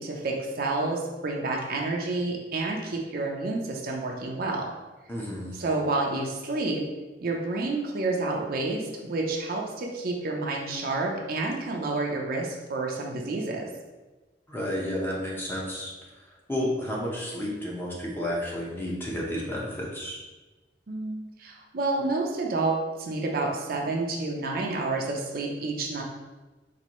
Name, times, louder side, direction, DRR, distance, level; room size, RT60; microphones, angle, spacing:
voice 1, 0.0-4.7 5.5-6.8 7.2-13.7 20.9-26.0, right 3 dB, 55° right, 0 dB, 0.5 m, -29 dB
voice 2, 5.1-5.5 14.5-15.9 16.5-20.2, equal, 15° left, -4 dB, 0.7 m, -31 dB
4.1 x 2.6 x 3.0 m, 1.2 s
head